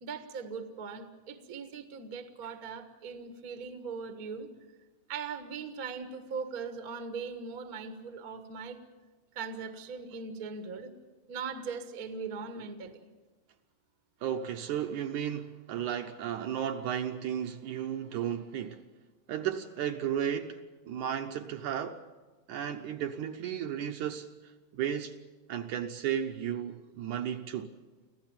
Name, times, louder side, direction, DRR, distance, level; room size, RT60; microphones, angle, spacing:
voice 1, 0.0-4.5 5.1-8.8 9.3-10.9 11.3-13.1, right 5 dB, 50° right, 1.0 m, -40 dB
voice 2, 14.2-18.8 19.3-20.6 20.9-22.0 22.5-25.1 25.5-27.7, right 9 dB, 70° right, 2.0 m, -34 dB
25.0 x 15.5 x 8.8 m
omnidirectional pair, 4.1 m